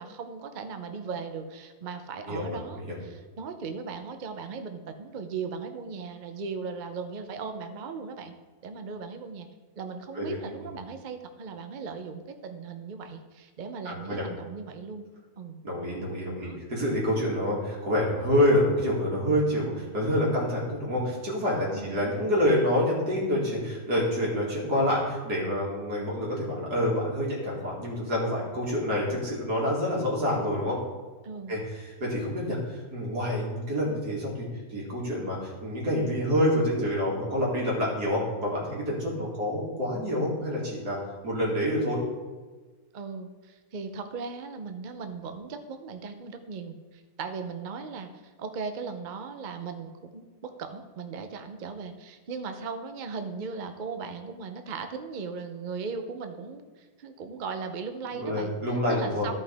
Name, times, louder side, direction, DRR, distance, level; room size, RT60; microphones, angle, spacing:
voice 1, 0.0-8.3 8.6-9.5 9.8-15.1 15.4-15.6 16.4-16.6 21.7-22.0 31.2-31.6 42.9-58.5 58.9-59.3, right 5 dB, 60° right, 7 dB, 0.5 m, -38 dB
voice 2, 2.3-3.0 10.1-10.4 13.8-14.2 15.6-30.8 31.5-41.0 41.2-42.0 58.1-59.3, equal, 75° right, -4 dB, 2.9 m, -27 dB
13.5 x 5.7 x 3.4 m, 1.4 s
omnidirectional pair, 1.7 m